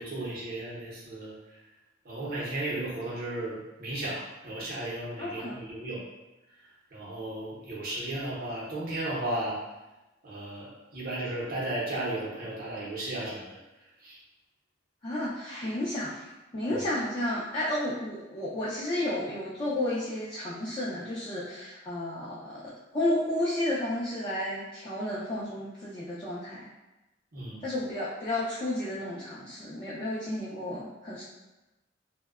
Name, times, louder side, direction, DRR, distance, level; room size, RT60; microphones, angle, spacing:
voice 1, 0.0-1.4 2.0-6.0 6.9-9.6 10.2-13.6 14.0-14.2 16.7-16.8 27.3-27.6, right 1 dB, 50° right, -6 dB, 0.7 m, -35 dB
voice 2, 5.2-5.6 15.0-16.2 16.5-22.6 22.9-26.7 27.6-31.2, left 1 dB, 25° left, -9 dB, 0.4 m, -32 dB
2.7 x 2.1 x 2.3 m, 1.0 s
head